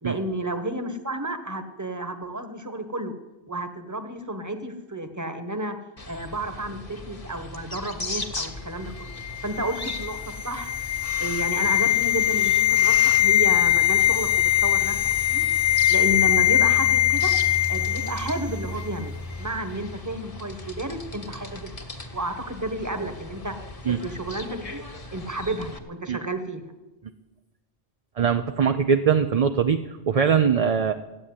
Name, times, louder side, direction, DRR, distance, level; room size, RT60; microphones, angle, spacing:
voice 1, 0.0-3.1 3.5-5.7 6.1-9.1 9.4-10.7 11.2-14.9 15.3-15.4 15.9-17.3 17.7-21.7 22.1-23.5 23.9-24.8 25.1-26.7, right 1 dB, 15° right, 8 dB, 1.3 m, -31 dB
sound 1, 6.0-25.8, left 1 dB, 30° left, 1.4 m, -37 dB
sound 2, 9.2-18.4 18.7-18.9, left 12 dB, 75° left, 1.1 m, -21 dB
voice 2, 28.2-30.9, right 7 dB, 45° right, 8 dB, 0.6 m, -21 dB
14.5 x 8.7 x 9.7 m, 1.1 s
omnidirectional pair, 1.1 m